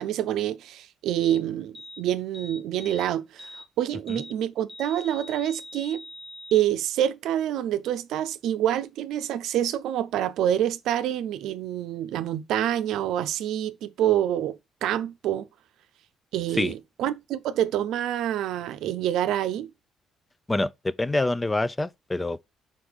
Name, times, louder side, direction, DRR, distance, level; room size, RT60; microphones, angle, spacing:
voice 1, 0.0-6.0 6.5-15.5 16.3-19.7, right 11 dB, 80° right, 0.6 m, -27 dB
sound 1, 1.2-1.4 1.7-2.0 2.3-3.1 3.4-3.7 4.1-4.3 4.7-6.6, left 1 dB, 5° right, 0.9 m, -43 dB
voice 2, 20.5-22.4, left 2 dB, 20° left, 0.4 m, -26 dB
4.8 x 4.5 x 5.1 m
supercardioid pair, 75°, 0 cm